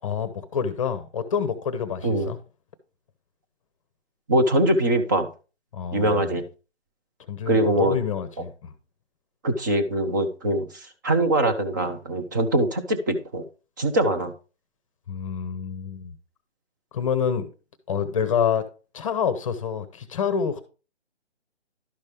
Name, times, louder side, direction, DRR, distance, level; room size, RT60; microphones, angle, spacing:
voice 1, 0.0-2.4 5.7-6.3 7.3-8.7 15.1-16.1 16.9-17.5 17.9-18.7 18.9-20.6, left 7 dB, 30° left, 0.8 m, -27 dB
voice 2, 4.3-5.3 5.9-6.5 7.5-8.0 9.4-13.5 13.8-14.3, right 1 dB, 20° right, 0.6 m, -23 dB
11.5 x 5.4 x 3.3 m
hypercardioid pair, 150°, 34 cm